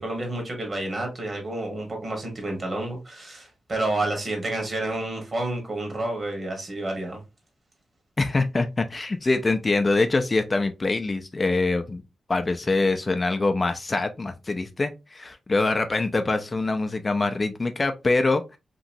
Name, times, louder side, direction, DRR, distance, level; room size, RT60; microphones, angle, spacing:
voice 1, 0.0-7.2, right 2 dB, 45° right, 1.3 m, -30 dB
voice 2, 8.2-12.0 12.3-18.6, left 3 dB, 35° left, 0.4 m, -24 dB
3.0 x 2.6 x 2.5 m
cardioid pair, 65°, 0 cm